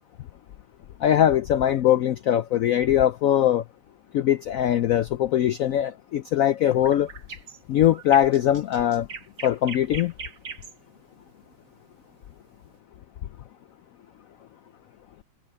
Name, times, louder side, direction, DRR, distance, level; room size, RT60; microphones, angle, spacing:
voice 1, 1.0-3.6 4.1-7.1 7.7-9.1 9.4-10.1, left 11 dB, 85° left, 0.7 m, -21 dB
sound 1, 6.7-12.8, right 5 dB, 80° right, 3.2 m, -41 dB
omnidirectional pair, 2.0 m